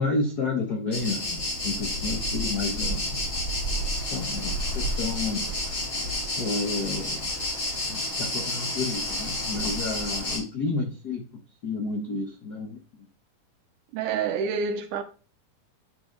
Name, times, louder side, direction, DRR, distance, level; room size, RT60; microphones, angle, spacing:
voice 1, 0.0-3.2 4.0-5.4 6.4-7.3 7.9-13.1, left 3 dB, 65° left, 0.9 m, -31 dB
sound 1, 0.9-10.4, left 1 dB, 35° left, 4.4 m, -30 dB
voice 2, 13.9-15.0, right 6 dB, 85° right, 2.3 m, -27 dB
9.4 x 5.0 x 3.9 m
omnidirectional pair, 3.6 m